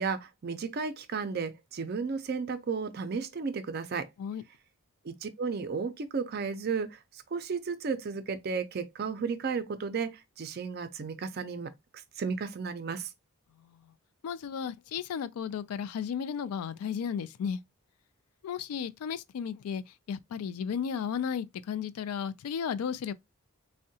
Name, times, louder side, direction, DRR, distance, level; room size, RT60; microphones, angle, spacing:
voice 1, 0.0-4.1 5.0-11.7 12.2-13.1, right 5 dB, 45° right, 0.4 m, -33 dB
voice 2, 14.2-17.6 18.4-19.8 20.1-23.1, left 7 dB, 90° left, 0.3 m, -34 dB
3.6 x 2.1 x 2.6 m
head